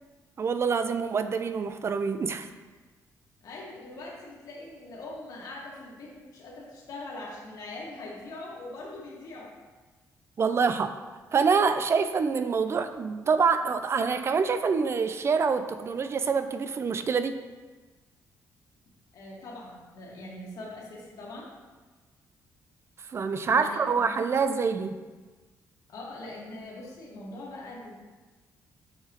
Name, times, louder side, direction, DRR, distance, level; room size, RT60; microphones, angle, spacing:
voice 1, 0.4-2.5 10.4-11.0 11.3-17.4 23.1-25.0, right 5 dB, 40° right, 10 dB, 0.4 m, -26 dB
voice 2, 3.4-9.5 19.1-21.5 23.5-24.1 25.9-27.9, left 2 dB, 65° left, -4 dB, 1.8 m, -42 dB
7.4 x 4.8 x 3.0 m, 1.3 s
cardioid pair, 95°, 7 cm